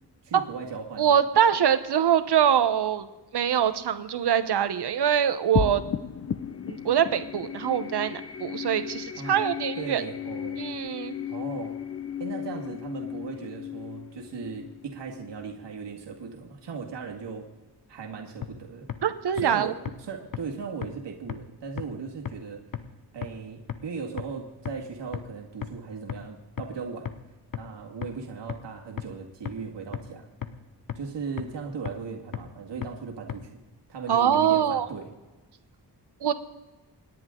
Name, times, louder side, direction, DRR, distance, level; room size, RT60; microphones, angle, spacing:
voice 1, 0.2-1.2 9.2-9.4 9.8-10.6 11.3-11.8 12.2-17.5 17.9-18.9 19.3-22.6 23.1-27.1 27.6-30.3 31.0-33.6 33.9-35.1, right 5 dB, 85° right, 0 dB, 2.1 m, -37 dB
voice 2, 1.0-3.1 3.3-5.8 6.7-10.0 10.6-11.1 19.0-19.7 34.1-34.9 36.2-36.3, right 9 dB, 70° right, 11 dB, 1.1 m, -23 dB
sound 1, 5.5-16.2, left 8 dB, 35° left, 0.5 m, -35 dB
sound 2, 18.4-18.5 18.9-19.0 19.4-19.5 19.9-20.0 20.3-20.4 20.8-20.9 21.3-21.4 21.8-21.9 22.3-22.4 22.7-22.8 23.2-23.3 23.7-23.8 24.2-24.3 24.7-24.8 25.1-25.2 25.6-25.7 26.1-26.2 26.6-26.7 27.1-27.2 27.5-27.6 28.0-28.1 28.5-28.6 29.0-29.1 29.5-29.6 29.9-30.0 30.4-30.5 30.9-31.0 31.4-31.5 31.9-32.0 32.3-32.4 32.8-32.9 33.3-33.4, left 9 dB, 50° left, 1.0 m, -32 dB
27.0 x 10.5 x 3.8 m, 1.1 s
wide cardioid pair, 165°, 41 cm